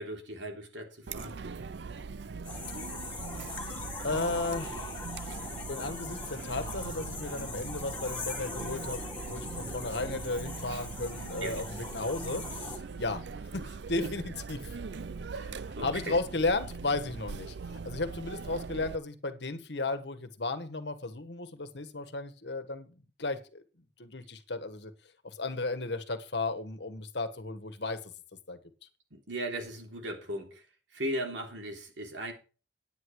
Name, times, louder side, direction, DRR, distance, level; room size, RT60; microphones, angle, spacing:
voice 1, 0.0-1.3 10.7-10.8 11.4-11.5 15.3-16.2 29.1-30.6 30.9-32.3, right 1 dB, 85° right, 3 dB, 3.3 m, -37 dB
Chatter, 1.1-19.0, right 4 dB, 70° right, 0.5 m, -41 dB
sound 1, 2.4-12.8, left 3 dB, 10° left, 2.7 m, -41 dB
voice 2, 4.0-5.1 5.7-13.2 13.5-14.8 15.8-17.5 17.8-22.9 23.2-23.6 24.0-24.9 25.2-28.1 28.5-28.6, left 3 dB, 70° left, 10 dB, 1.5 m, -34 dB
10.0 x 9.4 x 4.7 m, 0.34 s
head